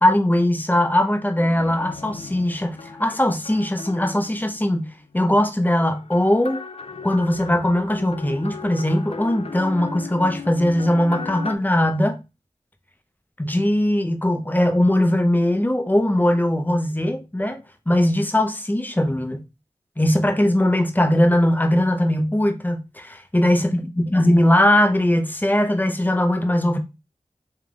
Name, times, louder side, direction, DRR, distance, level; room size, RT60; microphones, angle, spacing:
voice 1, 0.0-4.9 5.1-6.6 7.0-12.2 13.4-19.4 20.0-26.8, left 1 dB, 15° left, 0.8 m, -20 dB
sound 1, 1.3-4.9 5.8-11.6, left 5 dB, 50° left, 0.5 m, -37 dB
3.4 x 3.2 x 3.7 m
wide cardioid pair, 65°, 13 cm